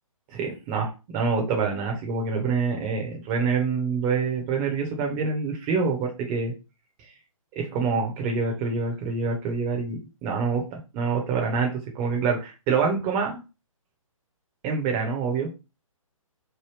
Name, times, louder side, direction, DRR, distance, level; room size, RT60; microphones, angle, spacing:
voice 1, 0.3-6.5 7.6-13.3 14.6-15.5, right 5 dB, 25° right, 1 dB, 0.8 m, -26 dB
3.3 x 2.2 x 3.2 m, 0.29 s
figure-of-eight pair, 140°, 18 cm